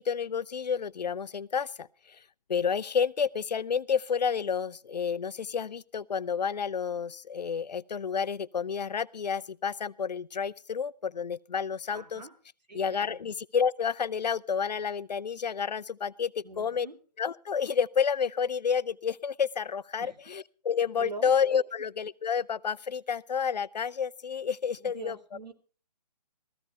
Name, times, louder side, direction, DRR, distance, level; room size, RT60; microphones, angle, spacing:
voice 1, 0.0-2.2 2.5-12.2 12.7-16.9 17.2-25.2, left 6 dB, 85° left, 0.6 m, -30 dB
voice 2, 11.9-12.4 12.7-12.8 13.1-13.2 16.4-17.0 20.0-20.2 21.0-21.3 24.8-25.5, right 2 dB, 90° right, 2.6 m, -43 dB
15.5 x 15.0 x 4.5 m
hypercardioid pair, 150°, 21 cm